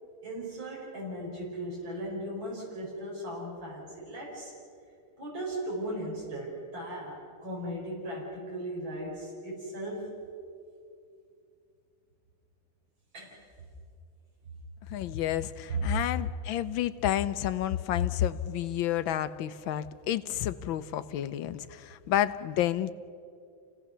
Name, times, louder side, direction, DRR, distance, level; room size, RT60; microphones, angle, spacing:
voice 1, 0.2-4.5 5.2-10.1 13.1-13.4 15.7-15.9, right 1 dB, 80° right, -4 dB, 5.7 m, -37 dB
voice 2, 14.9-22.9, left 11 dB, 80° left, 13 dB, 1.5 m, -30 dB
29.0 x 17.0 x 6.8 m, 2.4 s
omnidirectional pair, 2.2 m